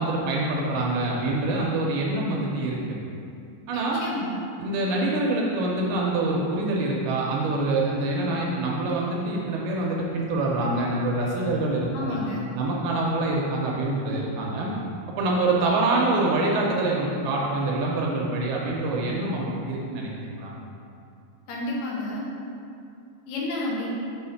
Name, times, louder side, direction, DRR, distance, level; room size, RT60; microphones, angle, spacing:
voice 1, 0.0-3.0 3.7-4.0 4.6-12.2 12.5-14.7 15.2-20.5, right 2 dB, 80° right, -3 dB, 2.4 m, -25 dB
voice 2, 3.7-4.3 11.9-12.4 21.5-22.2 23.3-23.9, left 2 dB, 75° left, -5 dB, 3.0 m, -30 dB
7.0 x 3.1 x 5.7 m, 2.5 s
omnidirectional pair, 4.8 m